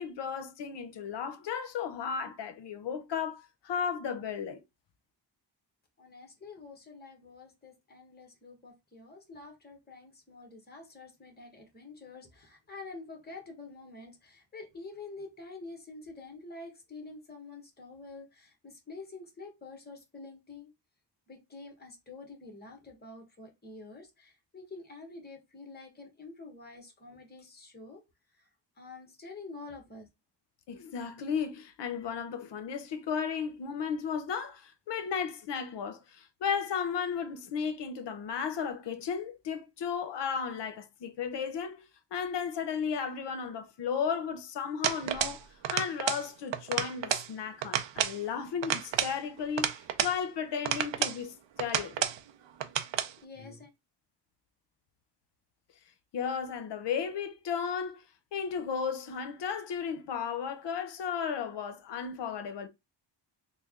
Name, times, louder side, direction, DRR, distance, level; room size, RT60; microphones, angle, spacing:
voice 1, 0.0-4.6 30.7-52.1 56.1-58.0 58.3-62.7, left 7 dB, 70° left, 0.7 m, -34 dB
voice 2, 6.0-20.7 21.3-28.0 28.4-28.5 28.8-30.1 53.2-53.7, left 3 dB, 20° left, 1.1 m, -47 dB
sound 1, 44.8-45.4 45.6-46.3 46.5-47.3 47.6-48.2 48.6-50.2 50.6-51.2 51.6-52.2 52.6-53.1, right 10 dB, 80° right, 0.6 m, -31 dB
3.3 x 2.2 x 3.6 m
wide cardioid pair, 170°, 43 cm